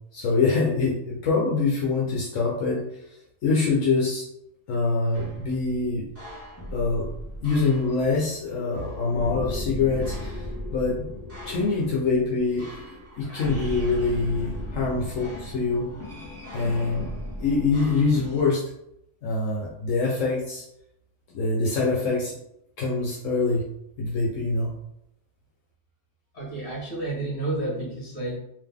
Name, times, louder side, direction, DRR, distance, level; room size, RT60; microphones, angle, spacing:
voice 1, 0.1-2.8 3.4-4.2 4.7-6.1 6.7-7.1 7.4-10.4 10.7-11.1 11.5-12.7 13.2-15.9 16.5-17.1 17.4-18.6 19.2-20.6 21.3-22.3 22.8-23.6 24.0-24.7, left 3 dB, 75° left, -4 dB, 1.1 m, -24 dB
sound 1, 5.1-18.4, left 1 dB, 10° right, 1.3 m, -36 dB
voice 2, 26.3-28.4, right 2 dB, 45° left, -4 dB, 1.7 m, -30 dB
3.8 x 2.8 x 3.5 m, 0.78 s
omnidirectional pair, 1.4 m